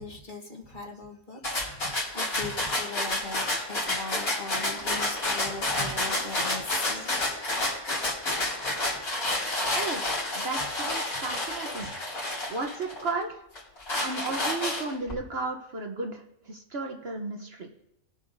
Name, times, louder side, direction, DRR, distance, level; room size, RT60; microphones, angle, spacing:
voice 1, 0.0-7.2 8.3-8.8 10.2-12.0, left 2 dB, 35° left, 0 dB, 1.4 m, -41 dB
sound 1, 1.4-13.1 13.5-15.1, left 2 dB, 75° left, 3.0 m, -29 dB
voice 2, 10.4-11.9 12.5-13.3 14.0-16.2 16.5-17.7, right 3 dB, 50° right, 2 dB, 1.0 m, -33 dB
20.0 x 7.1 x 2.6 m, 0.83 s
omnidirectional pair, 1.5 m